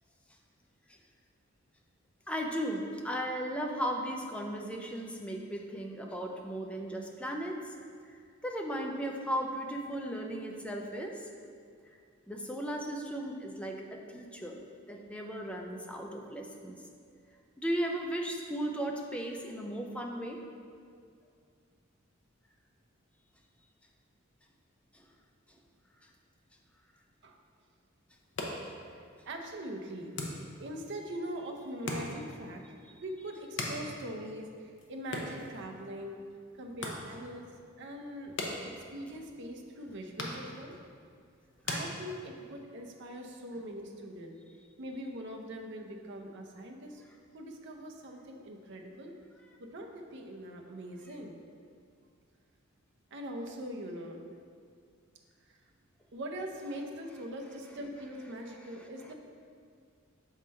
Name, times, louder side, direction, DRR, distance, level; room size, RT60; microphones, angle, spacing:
voice 1, 2.3-7.6 8.4-11.2 12.3-14.6 14.9-16.8 17.6-20.4 24.9-25.0, equal, 5° left, 1 dB, 0.5 m, -36 dB
sound 1, 28.1-42.6, left 2 dB, 60° left, 0.7 m, -43 dB
voice 2, 28.9-30.1 30.6-32.6 33.0-36.2 36.5-37.4 37.8-38.3 38.6-40.7 41.6-44.4 44.8-47.0 47.3-49.1 49.6-51.4 53.1-54.2 55.5-55.6 56.1-59.1, right 1 dB, 60° right, 2 dB, 0.6 m, -42 dB
6.3 x 3.7 x 4.3 m, 2.2 s
head